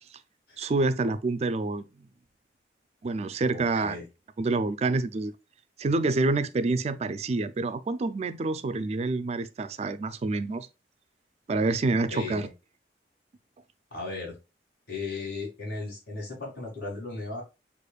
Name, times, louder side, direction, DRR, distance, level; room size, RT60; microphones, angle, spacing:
voice 1, 0.6-1.8 3.0-4.0 4.4-5.3 5.8-10.7 11.5-12.5, right 3 dB, 35° right, 0.3 m, -27 dB
voice 2, 3.5-4.0 12.1-12.5 13.9-14.4 14.9-17.4, left 3 dB, 60° left, 2.2 m, -36 dB
6.4 x 2.5 x 2.3 m
head